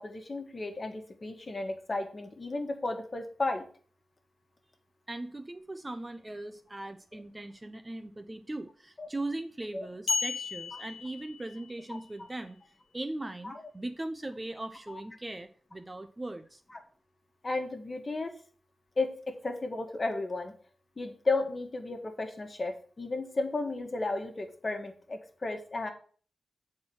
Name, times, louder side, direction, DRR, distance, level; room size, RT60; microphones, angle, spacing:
voice 1, 0.0-3.7 9.0-9.1 9.7-9.9 12.2-12.3 13.4-13.5 14.9-15.0 17.4-18.3 19.0-20.5 21.0-25.9, left 3 dB, 35° left, 4 dB, 1.5 m, -34 dB
voice 2, 5.1-12.6 12.9-16.6, right 2 dB, 20° right, 8 dB, 0.6 m, -39 dB
sound 1, 10.1-11.9, left 5 dB, 85° left, 1.0 m, -34 dB
7.4 x 4.4 x 6.1 m, 0.42 s
wide cardioid pair, 90°, 0 cm